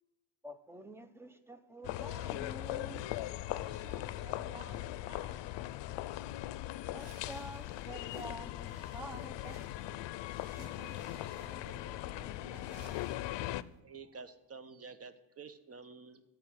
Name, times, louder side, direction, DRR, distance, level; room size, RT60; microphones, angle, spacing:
voice 1, 0.4-3.0 6.9-9.7 10.5-10.6, equal, 5° right, 0.6 m, -48 dB
sound 1, 1.8-13.6, left 15 dB, 80° left, 0.6 m, -40 dB
voice 2, 3.5-5.8 10.6-13.2, right 3 dB, 85° right, 3.3 m, -55 dB
sound 2, 6.9-13.8, right 7 dB, 60° right, 1.0 m, -62 dB
voice 3, 13.8-16.2, right 5 dB, 35° right, 0.9 m, -50 dB
14.0 x 5.0 x 6.4 m
cardioid pair, 130°, 43 cm